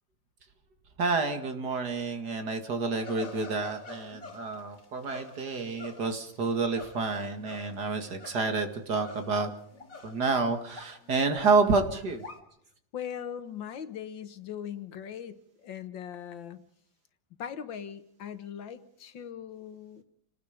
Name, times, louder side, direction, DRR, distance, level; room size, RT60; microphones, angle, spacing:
voice 1, 1.0-9.5 10.0-12.2, right 4 dB, 60° right, 6 dB, 2.7 m, -29 dB
sound 1, 3.0-8.6 8.9-10.4 10.7-12.4, left 4 dB, 45° left, 3.2 m, -47 dB
voice 2, 12.9-16.6 17.4-20.0, left 8 dB, 85° left, 11 dB, 2.1 m, -40 dB
28.5 x 19.5 x 5.2 m, 0.72 s
omnidirectional pair, 2.0 m